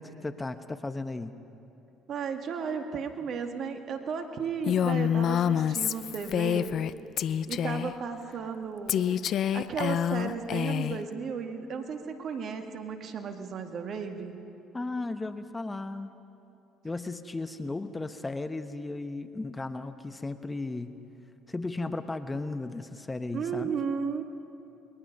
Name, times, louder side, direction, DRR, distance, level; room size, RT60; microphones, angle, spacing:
voice 1, 0.0-1.3 14.7-16.1 16.8-21.0 21.5-23.7, left 2 dB, 20° left, 9 dB, 1.1 m, -35 dB
voice 2, 2.1-6.8 7.5-14.4 23.3-24.2, right 6 dB, 55° right, 5 dB, 2.0 m, -34 dB
Female speech woman speaking, 4.7-6.9 7.2-7.9 8.9-11.0, left 9 dB, 60° left, 0.6 m, -27 dB
29.0 x 22.0 x 5.5 m, 2.9 s
hypercardioid pair, 65°, 0 cm